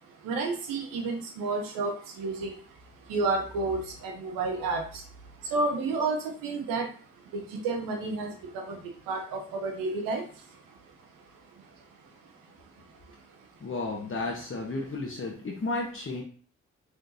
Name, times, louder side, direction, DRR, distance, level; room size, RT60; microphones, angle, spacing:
voice 1, 0.2-2.6 3.1-5.0 5.4-6.9 7.3-10.2, right 3 dB, 90° right, 3 dB, 0.9 m, -31 dB
voice 2, 13.6-16.2, left 3 dB, 40° left, -1 dB, 1.0 m, -33 dB
5.9 x 3.2 x 2.7 m, 0.42 s
supercardioid pair, 40°, 33 cm